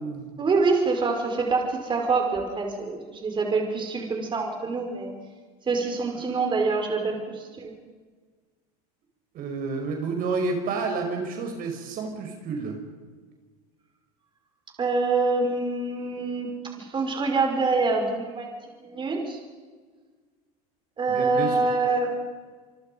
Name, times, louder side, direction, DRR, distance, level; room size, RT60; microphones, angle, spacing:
voice 1, 0.4-5.1 5.7-7.7 14.8-18.5 18.8-19.4 21.0-22.2, right 3 dB, 25° right, 2 dB, 5.5 m, -25 dB
voice 2, 9.3-12.8 21.1-21.6, right 4 dB, 45° right, 3 dB, 5.2 m, -30 dB
27.5 x 24.0 x 5.5 m, 1.5 s
supercardioid pair, 120°, 20 cm